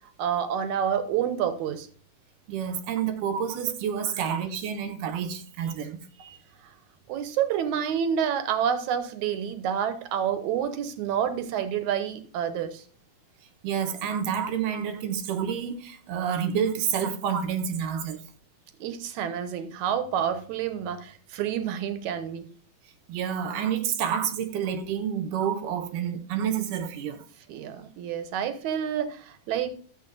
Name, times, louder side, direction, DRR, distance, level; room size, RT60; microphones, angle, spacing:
voice 1, 0.2-1.9 6.2-6.4 7.1-12.8 18.8-22.5 27.5-29.7, right 8 dB, 75° right, 2.2 m, -28 dB
voice 2, 2.5-6.0 13.6-18.2 23.1-27.2, right 8 dB, 90° right, 2.6 m, -29 dB
12.0 x 7.4 x 2.5 m
omnidirectional pair, 3.6 m